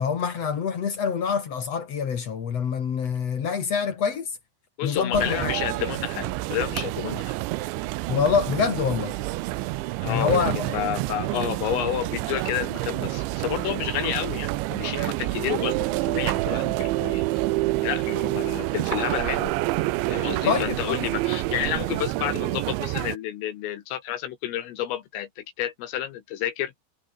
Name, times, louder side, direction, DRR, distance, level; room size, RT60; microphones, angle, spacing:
voice 1, 0.0-4.3 4.8-5.5 8.1-9.2 10.0-10.7 20.5-21.0, left 6 dB, 55° left, 1.9 m, -25 dB
voice 2, 4.8-7.4 10.0-17.3 17.8-19.5 20.1-26.7, left 12 dB, 80° left, 4.3 m, -30 dB
sound 1, 5.1-23.2, right 19 dB, 80° right, 2.8 m, -28 dB
omnidirectional pair, 5.9 m